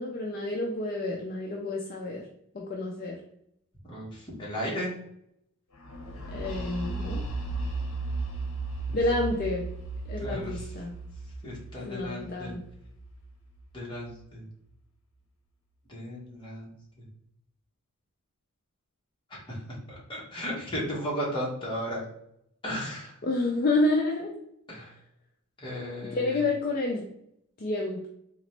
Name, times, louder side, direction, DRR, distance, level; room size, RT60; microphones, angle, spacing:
voice 1, 0.0-2.3 2.5-3.2 6.3-7.2 8.9-9.6 10.1-11.0 11.9-12.6 23.2-24.3 26.1-27.1 27.6-28.1, left 2 dB, 40° left, 0 dB, 0.4 m, -29 dB
voice 2, 3.8-4.9 8.9-9.0 10.2-10.7 11.4-12.5 13.7-14.4 15.9-16.7 19.3-19.6 19.9-22.0 22.6-23.1 24.7-24.9 25.6-26.4, equal, 20° left, -5 dB, 1.3 m, -35 dB
sound 1, 5.9-13.6, right 3 dB, 80° left, 0.7 m, -35 dB
3.9 x 2.9 x 3.2 m, 0.75 s
head